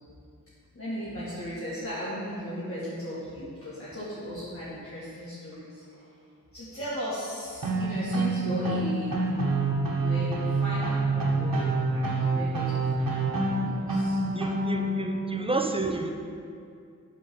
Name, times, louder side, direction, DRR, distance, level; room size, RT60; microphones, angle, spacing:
voice 1, 0.7-6.1 6.5-9.2 10.0-14.2, equal, 40° left, -11 dB, 2.1 m, -36 dB
sound 1, 7.6-15.0, right 3 dB, 80° right, 1.3 m, -27 dB
voice 2, 14.4-16.1, right 3 dB, 15° right, 4 dB, 0.6 m, -30 dB
9.2 x 3.9 x 6.9 m, 2.3 s
wide cardioid pair, 80°, 33 cm